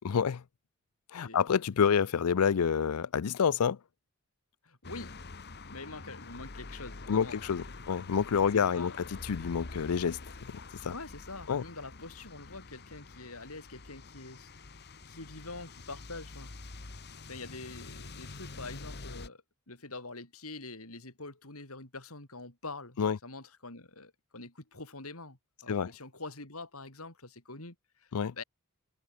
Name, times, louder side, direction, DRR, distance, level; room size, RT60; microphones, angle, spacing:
voice 1, 0.0-0.4 1.1-3.8 7.1-8.9 9.2-10.2 10.7-10.9 11.5-11.6 23.0-23.2 25.7-25.9 28.1-28.3, left 7 dB, 90° left, 0.5 m, -28 dB
voice 2, 4.6-5.1 5.7-7.8 8.7-9.1 10.9-14.5 15.0-16.5 17.1-28.4, left 3 dB, 75° left, 6.0 m, -45 dB
sound 1, 4.8-19.3, left 3 dB, 50° left, 1.5 m, -46 dB
head